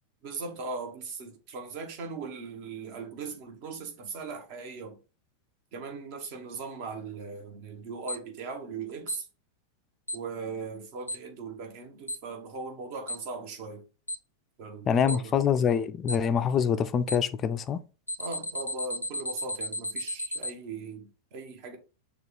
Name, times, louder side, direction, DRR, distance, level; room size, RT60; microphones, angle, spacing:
voice 1, 0.2-5.0 5.7-9.3 10.1-13.8 14.6-15.4 18.2-21.8, right 4 dB, 45° right, 1.2 m, -39 dB
Alarm, 8.1-8.2 9.1-9.2 10.1-10.2 11.1-11.2 12.1-12.2 13.1-13.2 14.1-14.2 15.1-15.2 16.1-16.2 17.1-17.2 18.1-20.5, left 1 dB, 85° left, 0.4 m, -33 dB
voice 2, 14.9-17.8, left 7 dB, 25° left, 0.4 m, -25 dB
6.5 x 2.4 x 3.4 m
figure-of-eight pair, 90°, 0 cm